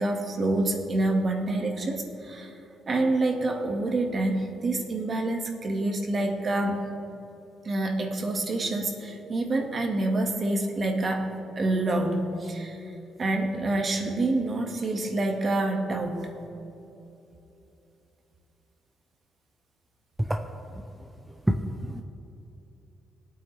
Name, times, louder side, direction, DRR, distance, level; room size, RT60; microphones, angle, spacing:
voice 1, 0.0-2.5 2.9-6.9 7.6-12.9 13.2-16.3, right 2 dB, 40° right, 3 dB, 1.7 m, -27 dB
voice 2, 21.3-22.0, right 1 dB, 10° right, 4 dB, 0.6 m, -28 dB
19.5 x 8.7 x 3.4 m, 2.9 s
cardioid pair, 90°, 0 cm